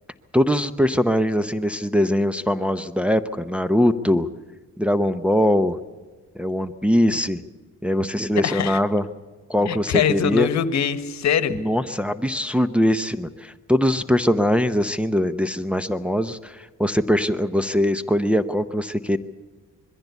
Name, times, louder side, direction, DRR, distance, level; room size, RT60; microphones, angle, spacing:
voice 1, 0.3-4.3 4.8-5.8 6.3-7.4 7.8-9.0 9.5-10.5 11.5-19.2, equal, 5° right, 7 dB, 0.8 m, -21 dB
voice 2, 8.4-8.8 9.6-11.6, left 8 dB, 65° left, 12 dB, 1.3 m, -23 dB
21.5 x 15.0 x 8.2 m, 1.4 s
cardioid pair, 90°, 30 cm